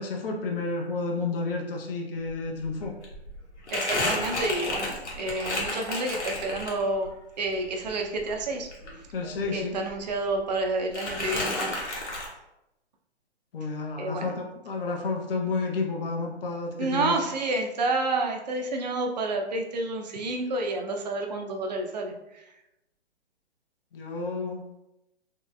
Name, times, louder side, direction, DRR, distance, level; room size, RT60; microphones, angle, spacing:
voice 1, 0.0-2.9 9.1-9.8 13.5-17.2 23.9-24.8, left 3 dB, 55° left, 1 dB, 0.6 m, -31 dB
Crumpling crinkling, 2.3-2.4 2.6-7.1 7.5-9.6 9.9-10.6 10.9-12.3, left 2 dB, 85° left, 1.1 m, -32 dB
voice 2, 3.7-7.1 7.4-8.7 9.5-11.8 14.0-14.3 16.8-22.1, right 2 dB, 40° right, 2 dB, 0.4 m, -29 dB
2.9 x 2.7 x 2.2 m, 0.90 s
figure-of-eight pair, 135°, 34 cm